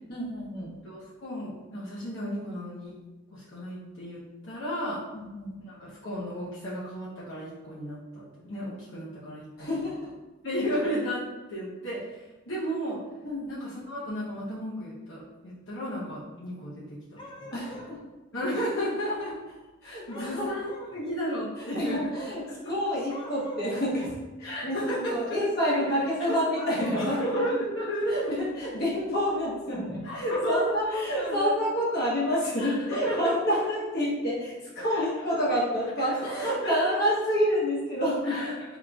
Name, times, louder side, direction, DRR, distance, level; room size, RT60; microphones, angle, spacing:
voice 1, 0.1-0.7 5.1-5.5 9.6-10.1 13.2-13.5 17.5-18.0 19.1-19.2 19.8-20.5 21.7-24.1 24.4-27.5 28.1-38.5, equal, 55° left, -7 dB, 1.2 m, -28 dB
voice 2, 0.8-2.9 3.3-5.0 5.6-9.9 10.4-13.0 13.5-17.5 18.3-19.3 19.8-22.2 22.5-22.7 24.4-25.5 25.7-26.4 27.0-28.7 30.0-31.5 32.6-33.3 34.9-35.0 35.3-35.4 36.4-37.0 38.2-38.5, equal, 80° left, -9 dB, 0.9 m, -33 dB
sound 1, 17.2-18.0 20.1-20.9 23.1-23.7 26.4-27.2 30.9-31.4, left 1 dB, 25° left, 0.4 m, -43 dB
3.8 x 2.9 x 2.3 m, 1.1 s
head